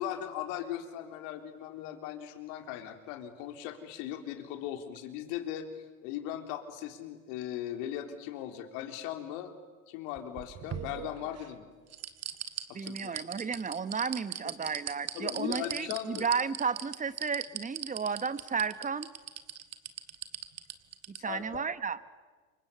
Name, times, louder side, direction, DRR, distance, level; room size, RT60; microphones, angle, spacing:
voice 1, 0.0-5.7 6.0-9.5 9.9-11.7 12.7-13.3 14.4-14.5 15.1-16.3 21.2-21.7, left 11 dB, 65° left, 6 dB, 3.7 m, -38 dB
sound 1, 10.2-11.5 11.9-21.2 21.5-21.6, right 9 dB, 35° right, 2.0 m, -39 dB
voice 2, 12.7-19.1 21.2-22.0, right 5 dB, 20° right, 14 dB, 1.4 m, -33 dB
28.5 x 24.0 x 8.2 m, 1.3 s
hypercardioid pair, 90°, 41 cm